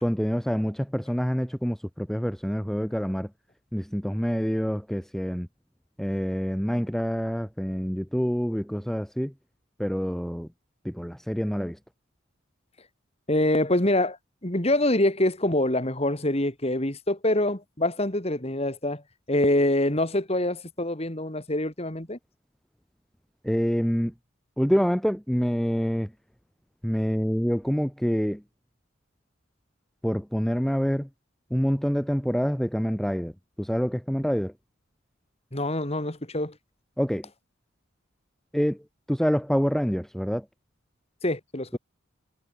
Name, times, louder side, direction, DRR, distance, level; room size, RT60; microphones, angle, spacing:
voice 1, 0.0-3.3 3.7-5.5 6.0-9.3 9.8-10.5 10.8-11.8 23.4-24.1 24.6-26.1 26.8-28.4 30.0-31.1 31.5-33.3 33.6-34.5 37.0-37.3 38.5-40.5, equal, ahead, 1.3 m, -26 dB
voice 2, 13.3-14.2 14.4-19.0 19.3-22.2 35.5-36.6 41.2-41.8, left 1 dB, 30° left, 2.6 m, -25 dB
head